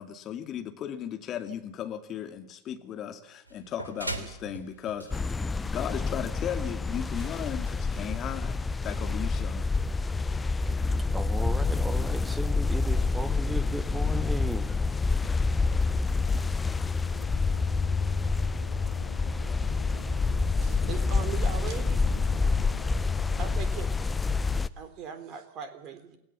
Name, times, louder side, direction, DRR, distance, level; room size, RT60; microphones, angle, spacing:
voice 1, 0.0-5.4 5.6-9.7 10.1-10.2, left 9 dB, 30° left, 7 dB, 2.4 m, -36 dB
sound 1, 3.5-8.8, right 1 dB, 80° right, 2.8 m, -42 dB
sound 2, 5.1-24.7, left 4 dB, 10° left, 0.8 m, -27 dB
voice 2, 11.1-14.8, right 2 dB, 10° right, 12 dB, 1.5 m, -36 dB
sound 3, 17.0-23.6, left 5 dB, 75° left, 2.7 m, -49 dB
voice 3, 20.6-22.0 23.4-23.9 24.8-26.2, right 7 dB, 35° right, 9 dB, 3.5 m, -39 dB
28.0 x 17.5 x 7.2 m, 0.82 s
figure-of-eight pair, 90°, 0 cm